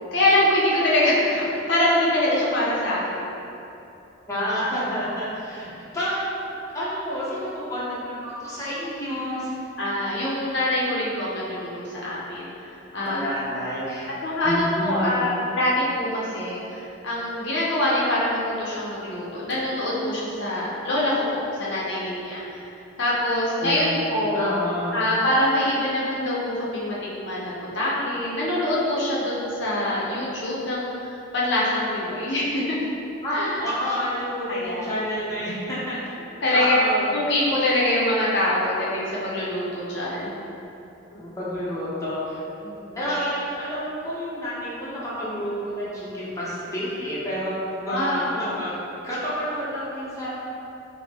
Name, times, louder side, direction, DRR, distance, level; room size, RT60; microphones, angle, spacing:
voice 1, 0.1-3.3 9.8-12.5 12.9-13.2 14.2-22.4 23.0-24.5 24.9-32.8 33.3-33.6 34.5-34.9 36.4-36.8 37.1-40.3 42.6-42.8 47.9-48.6, left 1 dB, 65° left, -6 dB, 0.7 m, -24 dB
voice 2, 4.3-9.5 12.9-14.1 14.4-15.3 23.6-24.0 24.3-25.1 33.2-36.0 36.5-37.1 41.2-42.4 42.9-48.7 49.0-50.3, equal, 15° left, -10 dB, 0.7 m, -29 dB
4.5 x 2.0 x 2.8 m, 2.9 s
head